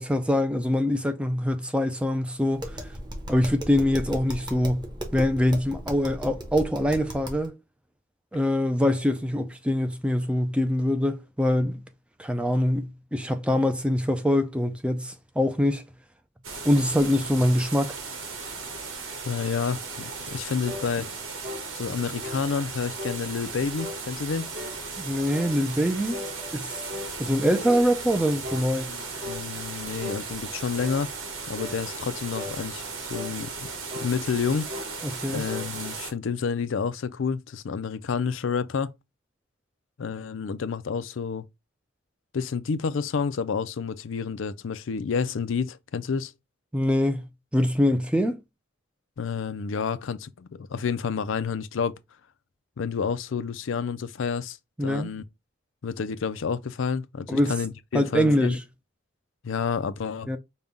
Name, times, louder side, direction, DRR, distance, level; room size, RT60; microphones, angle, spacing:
voice 1, 0.0-2.8 3.3-4.9 5.1-7.6 8.3-11.8 12.2-15.8 16.6-18.0 25.0-26.2 26.5-26.8 27.2-28.9 35.0-35.4 46.7-47.3 47.5-48.4 54.8-55.1 57.3-57.5 57.9-58.6 60.3-60.4, left 1 dB, 5° right, 0.4 m, -24 dB
Tap, 2.5-7.5, equal, 20° right, 1.0 m, -36 dB
sound 1, 16.4-36.1, right 4 dB, 85° right, 1.3 m, -36 dB
voice 2, 19.2-21.1 21.7-24.5 28.9-31.1 31.5-33.7 33.9-34.7 35.3-38.9 40.0-41.5 42.3-46.3 49.2-52.0 52.8-55.2 55.8-58.6 59.4-60.3, left 6 dB, 70° left, 0.4 m, -29 dB
sound 2, 20.6-20.9 21.4-21.7 22.2-22.5 23.0-23.2 23.8-24.0 24.5-24.8 25.3-25.6 26.1-27.1 27.7-27.9 28.4-28.7 29.2-29.5 30.0-30.2 30.8-31.0 31.6-31.8 32.3-32.6 33.1-33.4 33.9-34.1 34.7-34.9 35.5-35.7, left 2 dB, 45° right, 1.4 m, -37 dB
5.3 x 2.3 x 3.5 m
head